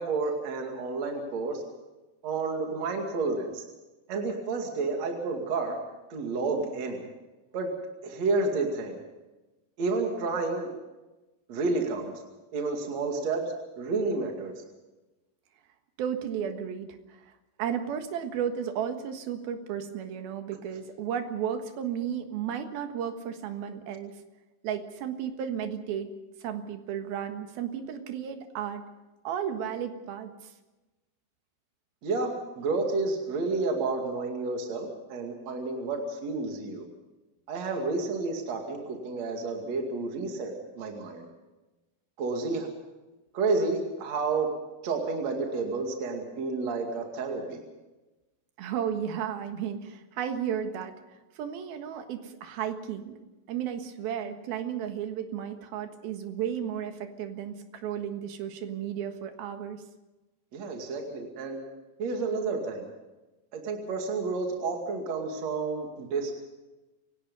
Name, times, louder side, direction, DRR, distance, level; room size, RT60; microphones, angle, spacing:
voice 1, 0.0-1.6 2.2-3.6 4.1-5.8 6.1-7.0 7.5-7.7 8.0-9.0 9.8-10.8 11.5-12.2 12.5-13.4 13.8-14.5 32.0-36.9 37.5-41.3 42.2-42.7 43.3-44.5 44.8-47.6 60.5-61.6 62.0-62.9 63.5-66.3, right 3 dB, 50° right, 2 dB, 3.4 m, -30 dB
voice 2, 16.0-17.3 17.6-24.2 24.6-26.1 26.4-28.8 29.2-30.3 48.6-50.9 51.4-53.2 53.5-59.8, right 8 dB, 85° right, 6 dB, 3.4 m, -33 dB
28.5 x 17.5 x 5.4 m, 1.1 s
omnidirectional pair, 4.2 m